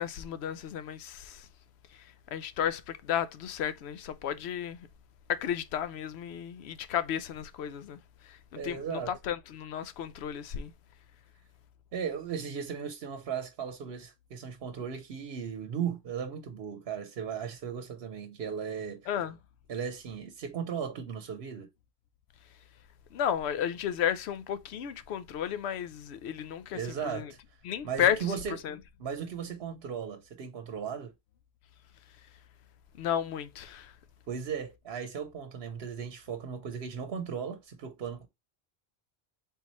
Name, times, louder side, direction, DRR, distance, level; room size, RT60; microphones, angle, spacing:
voice 1, 0.0-1.5 1.9-4.9 5.3-10.7 19.1-19.4 23.1-27.3 27.6-28.3 28.6-28.8 33.0-33.9, left 9 dB, 90° left, 0.8 m, -33 dB
voice 2, 8.5-9.1 11.9-19.1 19.7-21.7 26.7-27.4 27.8-28.6 29.0-31.1 34.3-38.3, right 7 dB, 75° right, 0.9 m, -36 dB
3.8 x 2.9 x 4.1 m
omnidirectional pair, 1.1 m